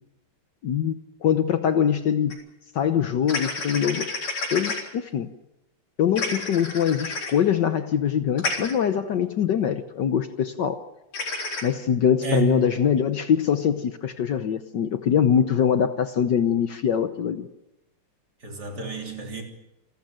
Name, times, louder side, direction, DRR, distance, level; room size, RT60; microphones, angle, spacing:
voice 1, 0.6-0.9 1.2-2.4 2.7-4.1 4.5-5.3 6.0-10.8 11.6-17.5, left 8 dB, 60° left, 9 dB, 1.5 m, -23 dB
sound 1, 2.3-2.4 3.3-4.8 6.2-7.3 8.4-8.7 11.1-11.6, left 3 dB, 75° left, 4.7 m, -29 dB
voice 2, 12.2-12.7 18.4-19.4, right 4 dB, 45° right, 2 dB, 4.0 m, -29 dB
28.5 x 13.0 x 9.0 m, 0.93 s
omnidirectional pair, 2.4 m